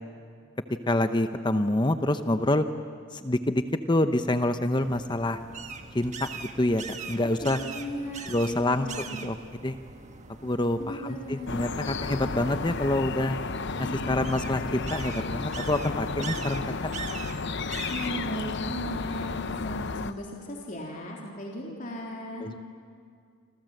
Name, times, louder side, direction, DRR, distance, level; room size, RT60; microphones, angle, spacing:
voice 1, 0.9-2.7 3.1-5.4 5.9-7.6 8.3-9.8 10.4-13.4 13.8-16.9 22.4-22.5, left 1 dB, 20° left, 9 dB, 0.8 m, -27 dB
sound 1, 4.8-19.9, right 5 dB, 30° right, 1.5 m, -43 dB
voice 2, 7.6-9.2 10.8-11.5 13.9-14.2 17.9-19.3 19.6-22.5, equal, 35° left, -2 dB, 3.5 m, -37 dB
sound 2, 11.5-20.1, left 4 dB, 50° left, 0.8 m, -33 dB
28.0 x 27.0 x 7.9 m, 2.2 s
head